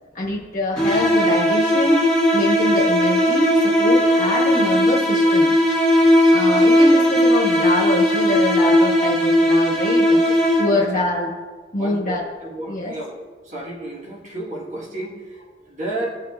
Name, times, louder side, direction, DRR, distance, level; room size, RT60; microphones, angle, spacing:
voice 1, 0.1-2.1 2.3-5.5 6.3-10.0 10.6-11.3 11.7-12.3 12.7-12.9, left 1 dB, 45° left, -3 dB, 1.3 m, -24 dB
sound 1, 0.8-11.0, equal, 5° left, 1.2 m, -17 dB
voice 2, 11.8-16.2, right 1 dB, 40° right, -3 dB, 1.3 m, -32 dB
14.0 x 5.5 x 2.3 m, 1.4 s
head